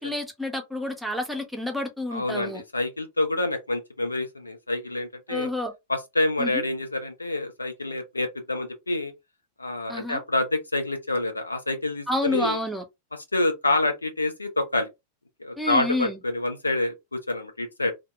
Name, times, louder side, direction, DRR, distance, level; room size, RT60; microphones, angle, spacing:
voice 1, 0.0-2.6 5.3-5.7 6.4-6.6 9.9-10.2 12.1-12.8 15.6-16.2, left 1 dB, ahead, 0.6 m, -29 dB
voice 2, 2.1-5.5 5.9-9.1 9.6-12.6 13.3-14.9 15.4-17.9, left 2 dB, 80° left, 0.5 m, -27 dB
2.1 x 2.0 x 2.8 m
figure-of-eight pair, 90°, 0 cm